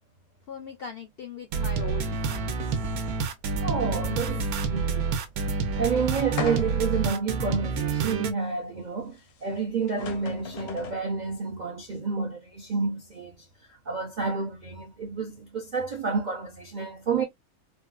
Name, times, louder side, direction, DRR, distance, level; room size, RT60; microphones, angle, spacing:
voice 1, 0.5-3.2 5.8-6.1, left 6 dB, 70° left, 0.5 m, -41 dB
sound 1, 1.5-8.3, right 5 dB, 90° right, 1.1 m, -28 dB
voice 2, 3.6-5.2 5.8-17.2, right 5 dB, 60° right, 0.4 m, -30 dB
sound 2, 6.4-7.0 7.6-7.7 9.5-9.6 9.9-11.1, left 7 dB, 85° left, 1.2 m, -35 dB
3.8 x 2.4 x 2.2 m
omnidirectional pair, 1.5 m